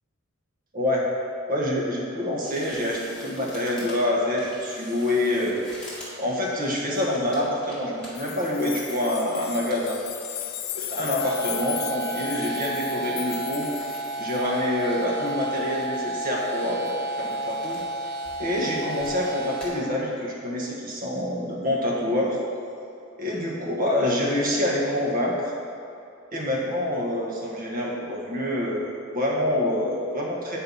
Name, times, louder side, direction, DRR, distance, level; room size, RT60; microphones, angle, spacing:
voice 1, 0.7-1.0 1.5-5.6 6.2-10.1 10.7-13.9 14.2-17.8 18.4-22.4 23.2-25.5 26.3-30.6, left 1 dB, 40° right, -3 dB, 1.4 m, -26 dB
sound 1, 2.4-11.4 11.7-12.7 13.0-13.1 13.3-14.5 14.8-16.1 16.5-17.9 18.2-19.2 19.6-19.7, left 1 dB, 5° left, 1.8 m, -47 dB
sound 2, 8.1-14.6 16.9-17.0, left 12 dB, 45° left, 0.4 m, -36 dB
sound 3, 11.2-19.7, right 2 dB, 70° right, 0.7 m, -31 dB
8.5 x 4.5 x 5.5 m, 2.6 s
head